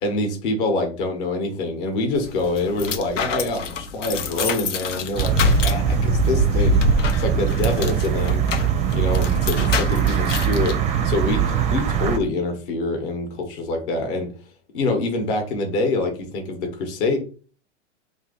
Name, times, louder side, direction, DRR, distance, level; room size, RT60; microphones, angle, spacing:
voice 1, 0.0-6.8 7.2-8.4 8.9-10.8 11.0-14.3 14.7-17.2, left 2 dB, 45° left, 4 dB, 1.1 m, -25 dB
sound 1, 2.1-10.7, left 4 dB, 80° left, 0.8 m, -26 dB
sound 2, 5.2-12.2, right 10 dB, 20° right, 0.4 m, -22 dB
2.7 x 2.6 x 4.0 m, 0.39 s
hypercardioid pair, 105°, 36 cm